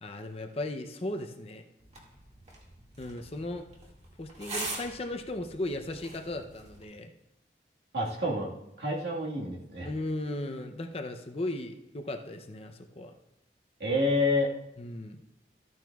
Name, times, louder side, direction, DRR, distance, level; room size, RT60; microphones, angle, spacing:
voice 1, 0.0-1.6 3.0-3.6 4.2-7.1 9.8-13.1 14.8-15.2, left 1 dB, 30° left, 5 dB, 0.6 m, -36 dB
sound 1, 1.8-6.8, right 2 dB, 35° right, 2.1 m, -43 dB
voice 2, 7.9-8.5 8.8-9.9 13.8-14.5, left 1 dB, 60° right, -2 dB, 1.8 m, -28 dB
14.0 x 9.1 x 2.4 m, 0.89 s
head